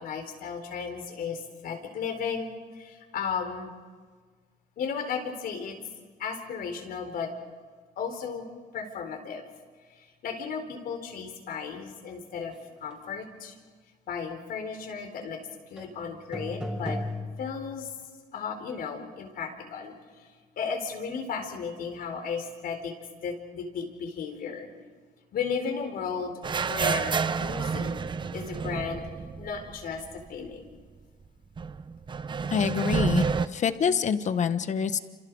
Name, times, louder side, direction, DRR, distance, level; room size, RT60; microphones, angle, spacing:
voice 1, 0.0-2.5 2.7-3.7 4.8-5.8 6.2-7.3 8.0-8.5 8.7-9.5 10.0-12.5 12.8-13.6 14.1-15.4 15.7-17.0 17.4-17.9 18.3-20.2 20.6-22.9 23.2-24.7 25.3-28.0 28.3-29.0 29.4-30.6, left 6 dB, 60° left, 5 dB, 4.2 m, -34 dB
sound 1, 15.8-15.9 16.3-17.9, left 1 dB, 5° right, 5.2 m, -35 dB
sound 2, 26.4-30.2 30.5-30.6 31.6-33.5, right 5 dB, 30° right, 0.8 m, -29 dB
voice 2, 32.5-33.3 33.5-35.0, left 7 dB, 45° left, 11 dB, 1.2 m, -26 dB
29.0 x 27.0 x 4.9 m, 1.5 s
cardioid pair, 110°, 17 cm